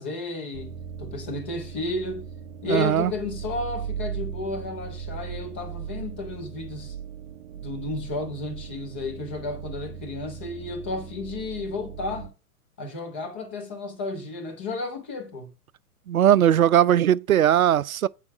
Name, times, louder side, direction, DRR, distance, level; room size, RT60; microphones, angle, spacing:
voice 1, 0.0-2.2 2.6-7.0 7.5-12.3 12.8-15.5, left 3 dB, 10° left, 0.4 m, -33 dB
sound 1, 0.5-12.3, right 8 dB, 45° right, 1.1 m, -38 dB
voice 2, 2.6-3.1 16.1-18.1, right 10 dB, 65° right, 0.5 m, -19 dB
8.7 x 4.8 x 5.6 m
figure-of-eight pair, 115°, 46 cm